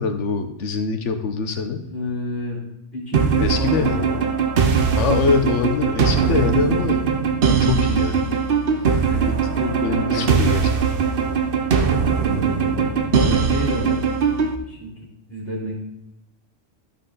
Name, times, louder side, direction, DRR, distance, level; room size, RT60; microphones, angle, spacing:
voice 1, 0.0-1.8 3.4-4.0 5.0-7.0 7.6-8.3 8.9-9.0 9.3-9.4 9.8-10.6, left 5 dB, 70° left, 8 dB, 1.2 m, -23 dB
voice 2, 1.8-2.6 2.9-4.2 9.0-10.3 12.1-14.0 14.7-14.9 15.3-15.7, equal, 10° left, -4 dB, 3.6 m, -30 dB
sound 1, 3.1-14.6, right 6 dB, 55° right, 0.9 m, -20 dB
12.0 x 5.6 x 3.9 m, 0.86 s
omnidirectional pair, 1.3 m